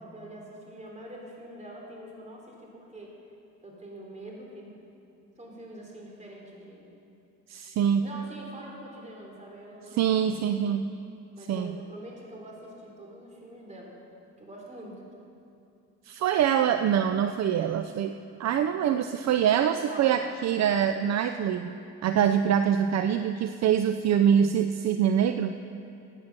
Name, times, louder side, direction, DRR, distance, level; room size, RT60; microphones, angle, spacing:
voice 1, 0.0-3.2 3.6-4.8 5.4-6.9 8.0-10.6 11.4-14.0 14.4-15.0 19.9-20.2, right 1 dB, 25° right, -1 dB, 3.5 m, -45 dB
voice 2, 7.5-8.1 10.0-10.9 11.5-11.7 16.1-21.7 22.0-25.6, right 9 dB, 60° right, 9 dB, 0.5 m, -24 dB
15.5 x 9.1 x 6.1 m, 2.6 s
cardioid pair, 90°, 30 cm